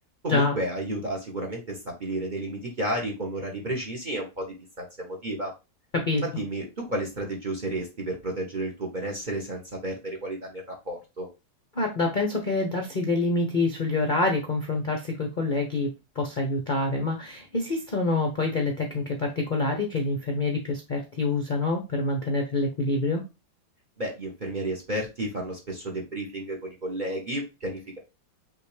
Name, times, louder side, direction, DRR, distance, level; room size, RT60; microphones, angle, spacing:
voice 1, 0.2-5.5 6.2-11.3 24.0-28.0, right 1 dB, 30° right, 1 dB, 1.0 m, -32 dB
voice 2, 11.7-23.2, left 2 dB, 45° left, 3 dB, 0.6 m, -26 dB
5.8 x 2.8 x 3.2 m, 0.26 s
omnidirectional pair, 2.0 m